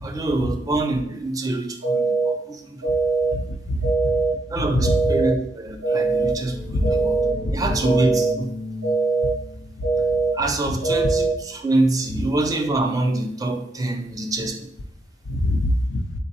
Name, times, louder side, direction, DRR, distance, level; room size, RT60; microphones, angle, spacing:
voice 1, 0.0-2.9 4.5-7.2 7.5-8.5 10.3-14.7, right 2 dB, 20° right, 5 dB, 0.3 m, -25 dB
sound 1, 1.8-2.3 2.8-3.3 3.8-4.3 4.8-5.3 5.8-6.3 6.8-7.3 7.8-8.3 8.8-9.3 9.8-10.3 10.8-11.3, right 3 dB, 85° right, 1.5 m, -21 dB
voice 2, 3.3-4.2 4.7-4.9 6.7-6.8 7.4-7.5 15.3-16.0, left 1 dB, 65° left, 8 dB, 0.4 m, -23 dB
sound 2, 6.0-11.5, left 1 dB, 65° right, 0.6 m, -35 dB
3.9 x 3.8 x 2.7 m, 0.75 s
head